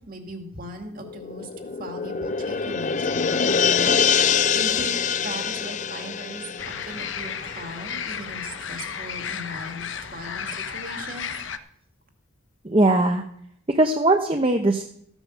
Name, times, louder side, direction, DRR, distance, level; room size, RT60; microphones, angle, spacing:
voice 1, 0.1-1.5 1.8-3.5 4.5-11.3, right 1 dB, 40° right, 4 dB, 2.1 m, -38 dB
sound 1, 1.0-8.0 8.3-8.4, left 6 dB, 35° left, 0.5 m, -25 dB
sound 2, 6.6-11.6, left 7 dB, 60° left, 0.8 m, -33 dB
voice 2, 12.6-13.2 13.7-14.8, right 2 dB, 25° right, 5 dB, 0.8 m, -20 dB
15.0 x 9.1 x 6.2 m, 0.68 s
head